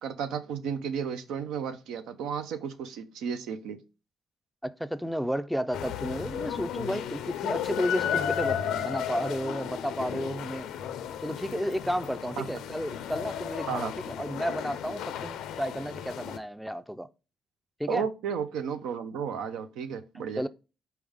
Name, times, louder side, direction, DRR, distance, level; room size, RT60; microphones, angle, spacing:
voice 1, 0.0-3.8 12.4-12.5 13.7-13.9 17.9-20.4, right 7 dB, 90° right, 0.5 m, -33 dB
voice 2, 4.6-10.7 11.2-17.1 17.8-18.1 20.4-20.5, equal, ahead, 0.4 m, -32 dB
sound 1, 5.7-16.4, left 9 dB, 85° left, 0.4 m, -34 dB
4.3 x 3.5 x 3.4 m
cardioid pair, 90°, 0 cm